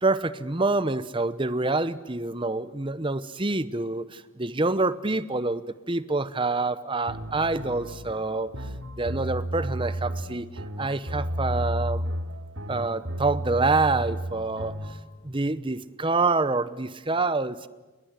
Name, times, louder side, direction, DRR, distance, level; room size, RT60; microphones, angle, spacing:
voice 1, 0.0-8.5 9.0-10.5 10.8-12.1 12.7-14.8 15.2-17.7, right 3 dB, 25° right, 15 dB, 0.9 m, -26 dB
sound 1, 7.1-15.0, right 1 dB, 70° right, 2.8 m, -32 dB
29.5 x 22.0 x 8.2 m, 1.2 s
head